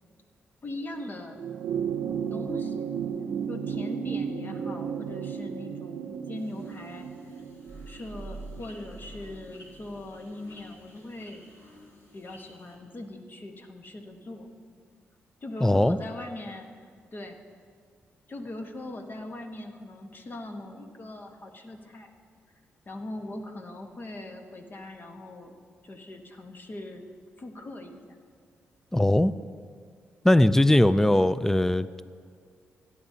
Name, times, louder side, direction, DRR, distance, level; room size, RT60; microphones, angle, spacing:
voice 1, 0.6-1.4 2.3-2.9 3.5-7.1 7.9-11.5 12.1-14.5 15.4-16.7 17.1-17.4 18.3-22.1 22.9-25.6 25.8-27.1 27.4-28.2 31.1-31.4, left 1 dB, 45° left, 4 dB, 1.3 m, -40 dB
sound 1, 1.3-10.0 11.2-11.3, right 7 dB, 85° right, 0.6 m, -34 dB
sound 2, 6.3-12.8, left 1 dB, 60° left, 2.7 m, -55 dB
sound 3, 7.7-10.2 10.6-10.7, right 2 dB, 25° right, 0.7 m, -45 dB
voice 2, 15.6-16.0 28.9-29.3 30.2-32.0, left 1 dB, 10° left, 15 dB, 0.4 m, -20 dB
17.5 x 9.6 x 2.8 m, 2.1 s
supercardioid pair, 55°, 5 cm